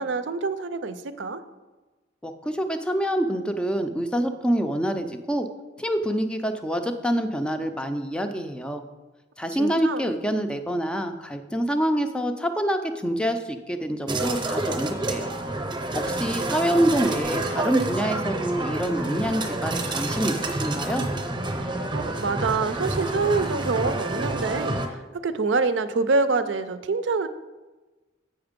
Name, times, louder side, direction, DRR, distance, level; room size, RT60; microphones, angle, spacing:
voice 1, 0.0-1.4 9.6-10.0 21.9-27.3, right 4 dB, 70° right, 11 dB, 0.5 m, -26 dB
voice 2, 2.2-5.5 5.8-8.8 9.4-15.3 15.9-21.0, equal, 5° left, 7 dB, 0.5 m, -26 dB
sound 1, 14.1-24.9, right 2 dB, 25° right, 0.8 m, -28 dB
7.9 x 5.8 x 5.1 m, 1.2 s
head